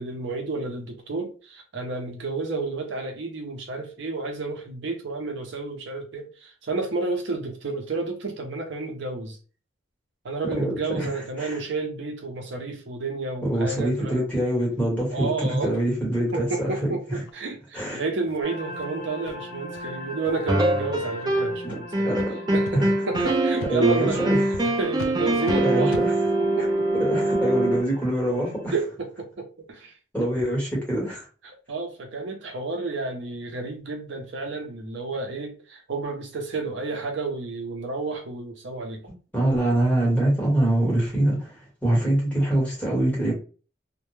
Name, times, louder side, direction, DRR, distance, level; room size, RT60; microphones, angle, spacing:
voice 1, 0.0-9.4 10.2-14.3 15.1-15.7 16.3-22.2 22.5-22.8 23.1-24.3 24.6-26.0 26.6-27.2 28.7-29.9 31.7-39.0, right 3 dB, 65° right, 0.6 m, -31 dB
voice 2, 10.6-11.1 11.4-11.6 13.5-16.7 17.1-17.2 17.7-18.0 21.6-21.8 22.1-22.3 22.7-22.9 23.7-24.4 25.6-26.1 27.0-28.7 30.1-31.3 39.3-43.3, right 1 dB, 10° left, 1.1 m, -24 dB
sound 1, 15.7-15.8 16.3-16.4 16.8-16.9 17.2-17.3 17.7-17.8 18.2-18.4 18.7-18.8 19.2-19.3 19.7-19.9 20.2-20.6 21.1-21.3 21.7-21.8 22.2-22.3 22.6-22.7 23.1-23.2 23.6-23.7 24.1-24.2 24.5-24.6 25.0-25.1 25.4-25.6 25.9-26.1, left 4 dB, 85° left, 0.3 m, -39 dB
sound 2, 18.4-28.7, left 1 dB, 40° left, 0.7 m, -41 dB
sound 3, 20.5-21.6 21.9-27.8, right 1 dB, 20° right, 0.4 m, -24 dB
2.1 x 2.1 x 3.0 m
head